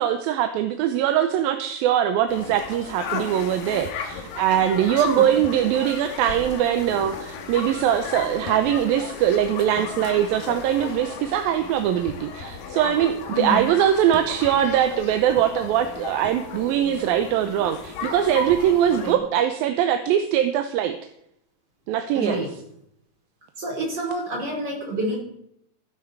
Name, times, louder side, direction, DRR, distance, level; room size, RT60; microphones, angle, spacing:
voice 1, 0.0-21.0 21.9-22.4, right 10 dB, 80° right, 8 dB, 2.5 m, -22 dB
sound 1, 2.3-19.1, left 5 dB, 75° left, 3.1 m, -35 dB
voice 2, 5.0-5.4 13.3-13.6 19.0-19.2 22.1-22.5 23.6-25.2, equal, 30° right, -2 dB, 5.1 m, -28 dB
15.5 x 11.0 x 4.6 m, 0.76 s
omnidirectional pair, 4.2 m